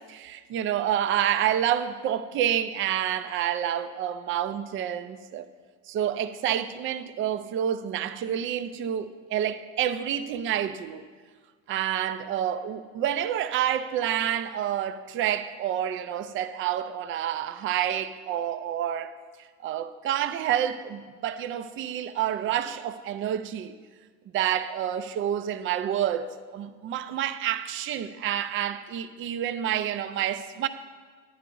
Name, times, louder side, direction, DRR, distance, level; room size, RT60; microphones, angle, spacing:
voice 1, 0.1-5.4 5.9-11.1 11.7-19.1 19.6-23.8 24.3-30.7, right 10 dB, 40° right, 0.5 m, -28 dB
10.5 x 9.5 x 3.8 m
cardioid pair, 130°, 30 cm